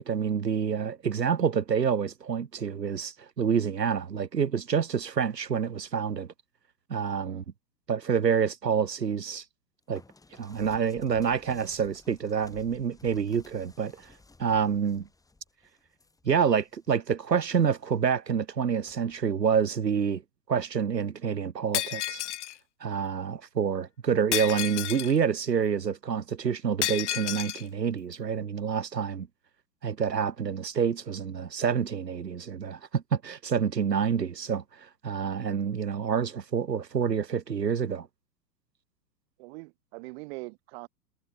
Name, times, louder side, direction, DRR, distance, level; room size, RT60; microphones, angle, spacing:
voice 1, 0.0-6.3 6.9-7.4 7.9-9.4 9.9-10.0 10.4-14.1 14.4-15.1 16.2-20.2 20.5-22.2 22.8-29.3 29.8-38.1, right 7 dB, 75° right, 1.4 m, -28 dB
sound 1, 9.9-16.9 17.4-18.0 18.9-19.2, left 3 dB, 5° left, 5.4 m, -55 dB
Shatter, 21.7-22.6 24.3-25.2 26.8-27.6, left 14 dB, 45° left, 0.7 m, -31 dB
voice 2, 39.4-40.9, right 26 dB, 40° right, 1.9 m, -42 dB
figure-of-eight pair, 105°, 49 cm